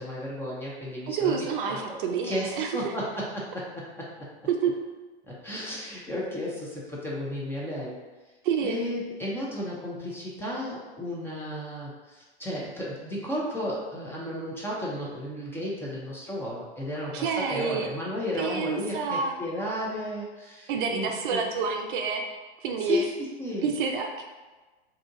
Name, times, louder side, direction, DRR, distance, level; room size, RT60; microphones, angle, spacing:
voice 1, 0.0-3.6 5.3-8.0 8.6-21.4 22.8-23.1 23.4-23.7, left 1 dB, 5° left, -6 dB, 0.4 m, -33 dB
voice 2, 1.1-2.7 4.5-4.8 8.4-8.8 17.1-17.9 18.4-19.4 20.7-22.2 22.6-23.1 23.6-24.2, right 6 dB, 50° right, 3 dB, 0.5 m, -28 dB
2.7 x 2.4 x 3.6 m, 1.2 s
hypercardioid pair, 110°, 33 cm